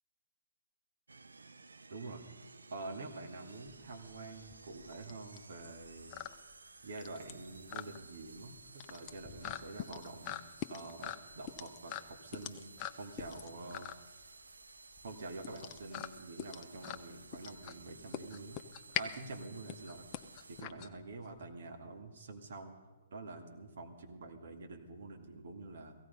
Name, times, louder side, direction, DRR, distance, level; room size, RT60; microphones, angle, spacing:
sound 1, 1.1-20.6, right 3 dB, 85° right, 0.6 m, -56 dB
voice 1, 1.9-2.2 2.7-6.2 6.8-10.4 10.7-14.3 15.0-18.6 19.0-20.1 20.5-22.8 23.1-26.0, right 3 dB, 65° right, 3 dB, 2.3 m, -47 dB
sound 2, 3.7-21.4, left 11 dB, 35° left, 0.8 m, -44 dB
17.0 x 15.0 x 5.4 m, 1.2 s
figure-of-eight pair, 125°, 0 cm